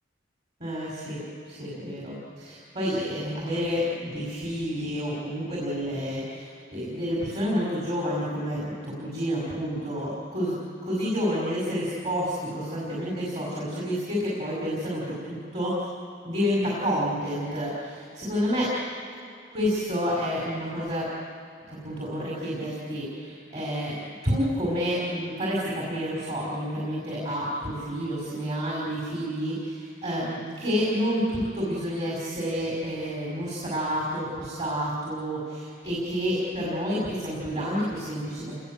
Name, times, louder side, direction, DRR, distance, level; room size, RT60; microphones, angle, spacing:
voice 1, 0.6-1.2 1.5-10.5 10.8-15.7 16.2-18.7 19.5-21.1 21.7-24.0 24.2-38.6, equal, 35° right, -5 dB, 5.4 m, -29 dB
29.0 x 20.5 x 7.7 m, 2.4 s
head